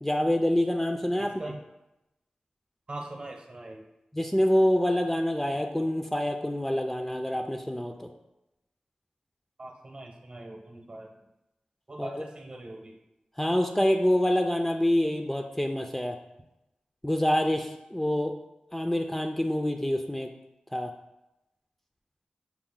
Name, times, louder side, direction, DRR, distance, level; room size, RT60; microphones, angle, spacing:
voice 1, 0.0-1.3 4.1-8.1 12.0-12.2 13.4-16.2 17.0-18.3 18.7-20.3 20.7-20.9, left 1 dB, 10° left, 3 dB, 0.4 m, -26 dB
voice 2, 1.2-1.6 2.9-3.9 9.6-11.1 11.9-13.0, right 2 dB, 45° right, 1 dB, 0.8 m, -41 dB
5.8 x 2.1 x 3.8 m, 0.93 s
cardioid pair, 55°, 3 cm